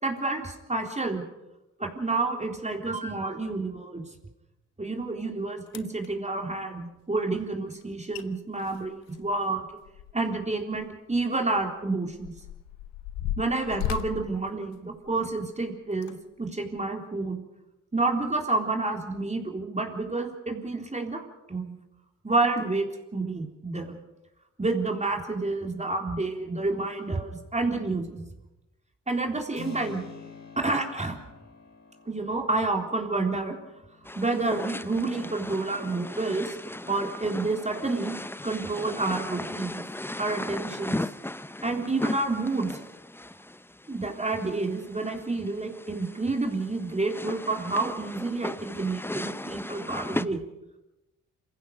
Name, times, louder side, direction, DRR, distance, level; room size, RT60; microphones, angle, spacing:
voice 1, 0.0-1.2 1.8-4.1 4.8-9.6 10.1-12.3 13.4-17.4 17.9-21.8 22.2-24.0 24.6-28.2 29.1-30.1 30.6-31.2 32.1-33.6 34.2-36.6 36.9-38.1 38.4-39.8 40.2-41.0 41.6-42.8 43.9-50.4, right 3 dB, 20° right, 3 dB, 3.7 m, -29 dB
sound 1, 5.2-5.3 5.7-6.1 7.8-7.9 8.1-8.3 8.6-10.4 10.7-10.9 11.6-15.3 15.9-16.1 16.8-16.9, left 11 dB, 80° left, 1.1 m, -36 dB
Keyboard (musical), 29.5-38.1, left 6 dB, 45° left, 4.3 m, -49 dB
sound 2, 34.1-50.3, left 1 dB, 5° left, 0.8 m, -37 dB
26.5 x 16.0 x 6.6 m, 0.96 s
hypercardioid pair, 45°, 36 cm